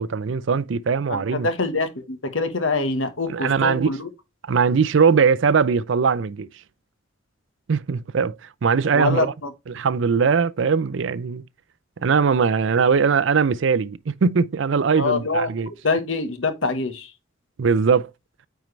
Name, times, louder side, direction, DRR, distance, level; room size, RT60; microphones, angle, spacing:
voice 1, 0.0-1.5 3.3-3.9 4.5-6.5 7.7-8.4 8.6-9.3 9.7-11.4 12.0-15.7 17.6-18.1, right 5 dB, 70° right, 0.5 m, -20 dB
voice 2, 1.1-4.1 8.9-9.3 14.9-15.5 15.8-17.1, left 3 dB, 80° left, 1.3 m, -24 dB
9.1 x 4.6 x 3.2 m
head